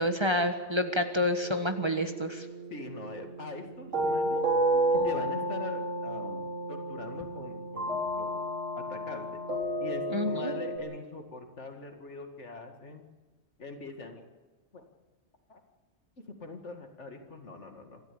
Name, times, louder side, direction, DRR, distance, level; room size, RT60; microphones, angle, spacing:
voice 1, 0.0-2.5 10.1-10.5, left 1 dB, 25° right, 6 dB, 1.4 m, -28 dB
sound 1, 1.4-10.8, right 1 dB, 85° right, 4.2 m, -32 dB
voice 2, 2.7-4.4 4.9-8.5 8.8-9.4 9.8-13.0 13.6-14.2 14.7-14.8 15.5-15.6 16.3-18.0, left 3 dB, 75° left, 4 dB, 2.4 m, -43 dB
26.0 x 13.0 x 8.6 m, 1.3 s
omnidirectional pair, 1.2 m